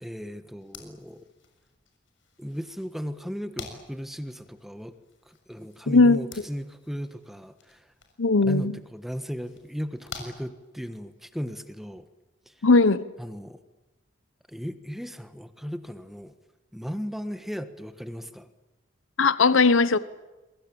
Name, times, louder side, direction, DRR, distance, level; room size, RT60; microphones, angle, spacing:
voice 1, 0.0-1.2 2.4-5.0 5.2-7.9 8.4-12.1 12.5-12.7 13.2-13.6 14.5-16.3 16.7-18.5, equal, ahead, 10 dB, 1.4 m, -36 dB
sound 1, 0.6-11.2, left 4 dB, 70° left, 6.7 m, -49 dB
voice 2, 5.9-6.2 8.2-8.8 12.6-13.0 19.2-20.0, left 3 dB, 85° left, 15 dB, 1.0 m, -18 dB
28.0 x 23.0 x 8.7 m, 1.1 s
head